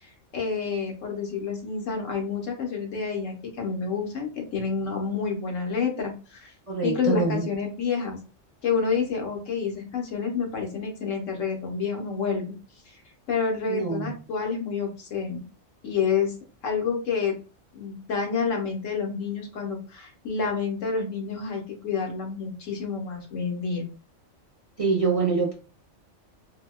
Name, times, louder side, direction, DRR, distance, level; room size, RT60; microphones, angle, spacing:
voice 1, 0.3-6.5 6.8-8.2 8.6-12.5 13.3-15.4 15.8-16.3 16.6-17.4 17.7-23.8, left 5 dB, 85° left, 1 dB, 1.3 m, -28 dB
voice 2, 6.7-7.4 13.7-14.1 24.8-25.5, right 4 dB, 40° right, -2 dB, 0.5 m, -25 dB
4.0 x 2.2 x 2.2 m, 0.35 s
omnidirectional pair, 1.3 m